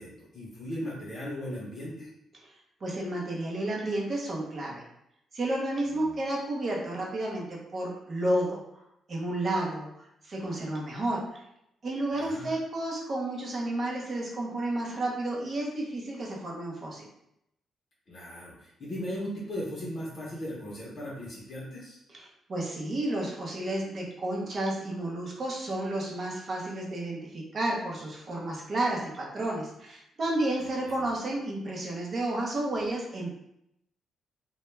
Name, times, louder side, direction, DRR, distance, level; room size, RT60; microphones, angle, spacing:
voice 1, 0.0-2.1 6.0-6.1 12.1-12.5 18.1-22.0 30.6-31.0, equal, 40° left, -6 dB, 0.6 m, -38 dB
voice 2, 2.8-4.8 5.3-8.6 9.1-11.4 11.8-17.1 22.1-33.3, right 1 dB, 40° right, -2 dB, 0.6 m, -31 dB
2.2 x 2.1 x 3.0 m, 0.80 s
cardioid pair, 140°, 0 cm